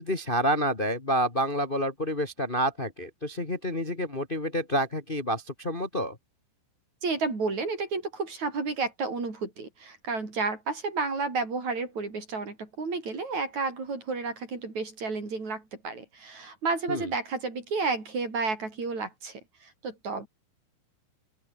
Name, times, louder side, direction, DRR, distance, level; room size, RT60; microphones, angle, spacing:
voice 1, 0.0-6.2 16.9-17.1, equal, 70° left, 0.5 m, -28 dB
voice 2, 7.0-20.3, right 4 dB, 40° right, 6.9 m, -31 dB
open air
omnidirectional pair, 5.5 m